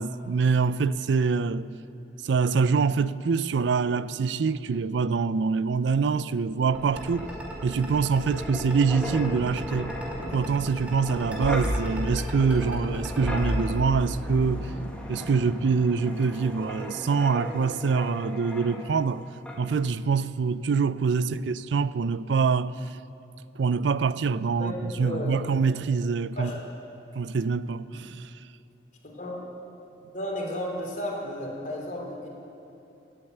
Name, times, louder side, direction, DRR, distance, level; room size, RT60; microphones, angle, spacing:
voice 1, 0.0-1.7 2.2-7.3 7.6-9.9 10.3-14.7 15.1-19.2 19.6-23.0 23.6-26.5 27.1-28.3, right 5 dB, 85° right, 0.4 m, -25 dB
Thunder, 6.2-16.9 17.2-17.3, right 1 dB, 35° right, 2.6 m, -44 dB
sound 1, 6.7-13.6, equal, 10° right, 2.6 m, -38 dB
Wind, 6.8-19.2 19.5-19.7, equal, 5° left, 1.7 m, -35 dB
voice 2, 24.6-25.4 26.4-26.6 29.2-29.4 30.1-32.3, left 1 dB, 50° left, 3.1 m, -33 dB
18.5 x 8.9 x 7.9 m
head